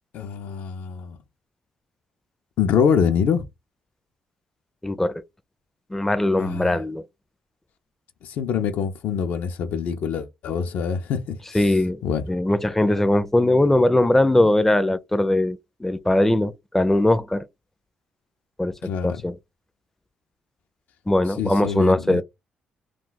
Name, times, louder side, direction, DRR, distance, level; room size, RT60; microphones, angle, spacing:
voice 1, 0.1-1.2 2.6-3.4 6.4-6.7 8.2-11.4 12.0-12.3 18.8-19.2 21.4-22.2, left 7 dB, 75° left, 0.5 m, -24 dB
voice 2, 4.8-5.2 5.9-7.0 11.5-12.0 12.3-17.5 18.6-19.4 21.1-22.2, left 1 dB, 10° left, 0.4 m, -20 dB
2.3 x 2.3 x 3.9 m
cardioid pair, 75°, 3 cm